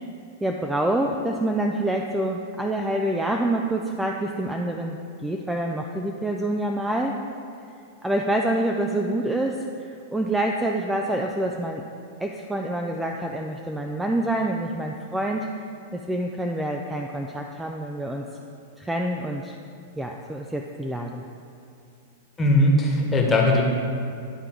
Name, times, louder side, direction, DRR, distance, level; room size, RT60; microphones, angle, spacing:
voice 1, 0.4-7.2 8.0-11.8 12.2-15.5 15.9-18.2 18.8-19.5 20.0-21.2, right 1 dB, 5° right, 1 dB, 0.4 m, -27 dB
voice 2, 22.4-23.6, left 1 dB, 15° left, -1 dB, 1.3 m, -19 dB
10.0 x 3.7 x 4.5 m, 2.4 s
hypercardioid pair, 120°, 0 cm